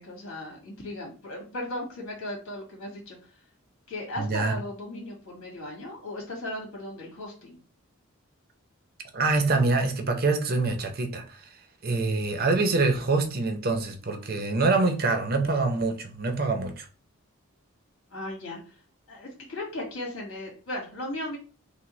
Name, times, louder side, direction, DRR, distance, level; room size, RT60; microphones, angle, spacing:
voice 1, 0.0-3.2 3.9-7.6 18.1-18.7 19.1-21.4, left 1 dB, 70° left, 2.0 m, -36 dB
voice 2, 4.2-4.5 9.1-11.4 11.8-16.9, right 3 dB, 40° right, 0.6 m, -25 dB
6.0 x 2.1 x 3.1 m
head